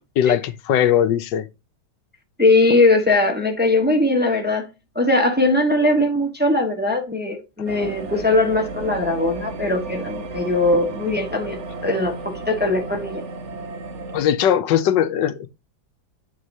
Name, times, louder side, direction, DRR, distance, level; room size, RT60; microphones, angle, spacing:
voice 1, 0.2-1.5 14.1-15.5, left 10 dB, 80° left, 1.3 m, -19 dB
voice 2, 2.4-4.7 4.9-13.2, left 2 dB, 5° right, 1.1 m, -20 dB
sound 1, 7.7-14.2, right 3 dB, 50° right, 1.0 m, -33 dB
8.8 x 6.4 x 2.7 m
omnidirectional pair, 2.0 m